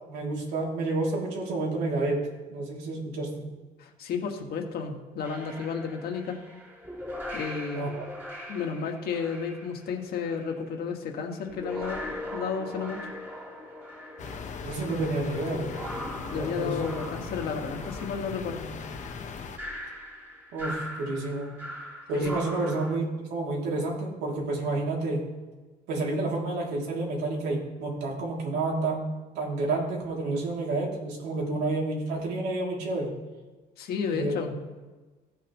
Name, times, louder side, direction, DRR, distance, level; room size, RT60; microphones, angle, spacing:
voice 1, 0.1-2.2 2.5-3.4 7.7-8.1 14.6-15.7 16.3-16.8 20.5-21.5 22.1-25.3 25.9-29.0 29.3-33.1 34.1-34.5, right 2 dB, 90° right, -2 dB, 2.9 m, -30 dB
voice 2, 3.8-6.4 7.3-7.9 8.5-13.0 16.3-18.7 22.1-22.3 33.8-34.5, left 6 dB, 65° left, 3 dB, 1.8 m, -32 dB
sound 1, 5.2-10.6 11.3-23.0, equal, 10° right, 3.0 m, -40 dB
sound 2, 14.2-19.6, left 5 dB, 45° left, 1.1 m, -38 dB
15.5 x 8.7 x 3.1 m, 1.3 s
cardioid pair, 110°, 17 cm